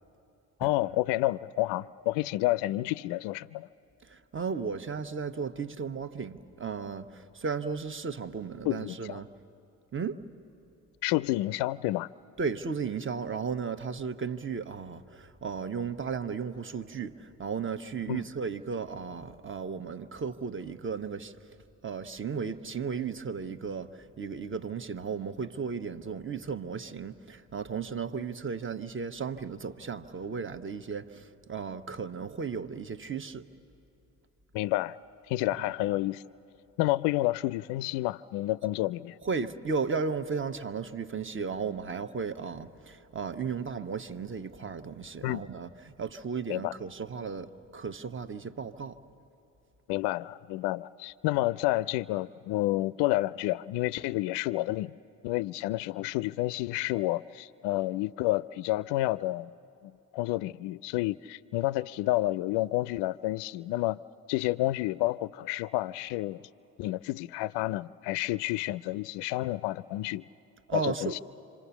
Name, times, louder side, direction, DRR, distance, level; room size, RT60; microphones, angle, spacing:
voice 1, 0.6-3.7 8.6-9.2 11.0-12.1 18.1-18.2 34.5-35.0 35.3-36.2 36.8-39.2 45.2-45.4 46.5-46.7 49.9-55.0 55.2-59.5 59.8-64.0 64.3-66.4 66.8-70.3 70.7-71.2, left 17 dB, 65° left, 0.5 m, -30 dB
voice 2, 4.0-9.3 9.9-10.2 12.4-21.4 21.8-33.5 35.5-35.7 39.2-49.0 70.7-71.2, right 5 dB, 25° right, 1.1 m, -35 dB
27.0 x 26.5 x 7.1 m
hypercardioid pair, 55°, 44 cm